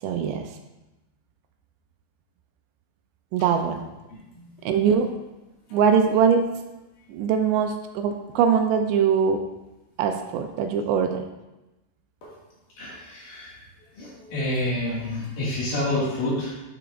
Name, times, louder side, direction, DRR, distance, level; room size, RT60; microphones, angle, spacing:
voice 1, 0.0-0.5 3.3-3.8 4.6-5.2 5.7-6.5 7.1-9.4 10.0-11.2, right 7 dB, 85° right, 6 dB, 2.7 m, -22 dB
voice 2, 12.8-13.5 13.9-16.5, left 1 dB, 55° left, -7 dB, 3.2 m, -28 dB
10.0 x 7.0 x 2.5 m, 1.0 s
omnidirectional pair, 5.1 m